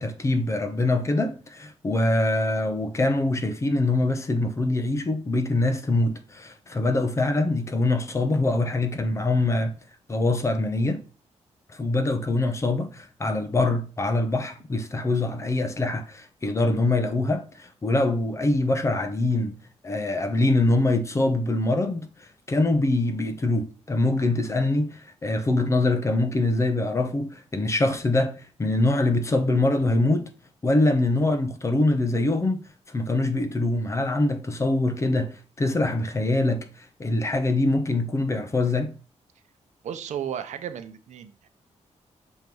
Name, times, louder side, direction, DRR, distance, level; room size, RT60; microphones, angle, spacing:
voice 1, 0.0-9.7 10.1-11.0 11.7-19.6 19.8-30.3 30.6-38.9, left 2 dB, 25° left, 0.8 m, -24 dB
voice 2, 39.8-41.5, right 9 dB, 80° right, 0.7 m, -34 dB
6.4 x 3.1 x 5.3 m
wide cardioid pair, 135°, 12 cm